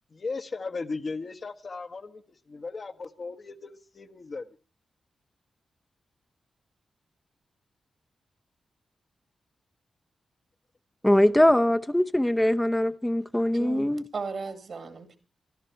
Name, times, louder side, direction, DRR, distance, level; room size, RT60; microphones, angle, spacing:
voice 1, 0.1-2.1 2.5-4.5, left 3 dB, 55° left, 1.3 m, -36 dB
voice 2, 11.0-14.0, left 1 dB, 10° left, 0.7 m, -22 dB
voice 3, 13.5-15.2, right 4 dB, 65° right, 2.2 m, -36 dB
25.0 x 12.0 x 4.5 m
supercardioid pair, 40°, 0 cm